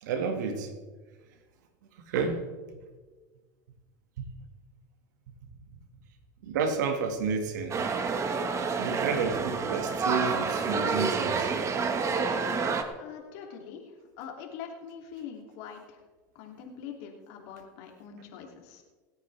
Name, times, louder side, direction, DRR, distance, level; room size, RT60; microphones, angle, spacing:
voice 1, 0.0-0.7 2.1-2.5 6.4-7.8 8.8-11.5, right 5 dB, 80° right, 6 dB, 2.0 m, -30 dB
sound 1, 7.7-12.8, right 5 dB, 30° right, 1.6 m, -28 dB
voice 2, 13.0-13.8 14.2-16.0 16.4-18.8, left 7 dB, 65° left, 1 dB, 2.8 m, -43 dB
26.5 x 9.1 x 3.4 m, 1.4 s
hypercardioid pair, 95°, 10 cm